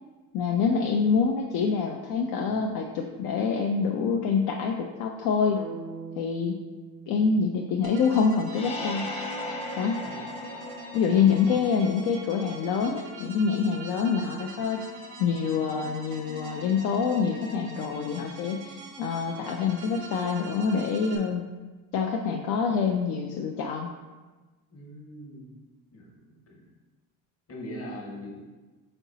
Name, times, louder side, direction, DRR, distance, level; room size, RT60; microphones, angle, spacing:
voice 1, 0.3-5.6 6.2-6.6 7.1-9.1 9.8-10.0 10.9-14.8 15.2-21.4 21.9-23.9, left 5 dB, 65° left, 1 dB, 0.5 m, -26 dB
sound 1, 5.6-9.6, right 5 dB, 50° right, 0.4 m, -44 dB
sound 2, 7.8-21.2, right 1 dB, 85° right, 0.8 m, -43 dB
sound 3, 8.5-12.1, left 1 dB, 15° left, 0.5 m, -37 dB
voice 2, 24.7-25.5 25.9-26.1 26.5-26.6 27.5-28.4, equal, 35° left, -2 dB, 1.1 m, -41 dB
4.3 x 3.9 x 2.7 m, 1.3 s
cardioid pair, 115°, 40 cm